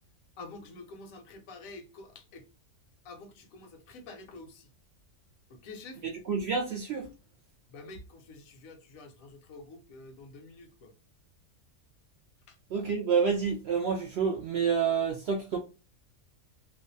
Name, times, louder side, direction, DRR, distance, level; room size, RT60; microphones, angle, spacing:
voice 1, 0.4-2.5 3.0-4.7 5.5-6.0 7.7-10.9 12.5-12.6, left 3 dB, 85° left, 1.0 m, -48 dB
voice 2, 6.3-7.1 12.7-15.6, right 6 dB, 65° right, 0.7 m, -28 dB
2.5 x 2.2 x 2.5 m
omnidirectional pair, 1.4 m